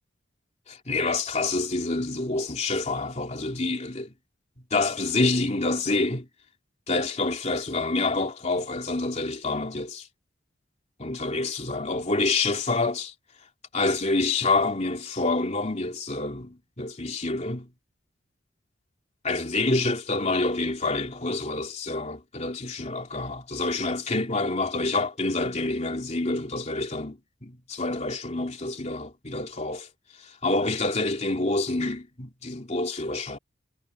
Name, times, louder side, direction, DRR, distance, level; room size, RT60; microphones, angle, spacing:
voice 1, 0.7-4.1 4.7-6.3 6.9-10.1 11.0-13.1 13.7-17.7 19.2-29.9 30.2-33.4, left 3 dB, 35° left, 2.9 m, -27 dB
head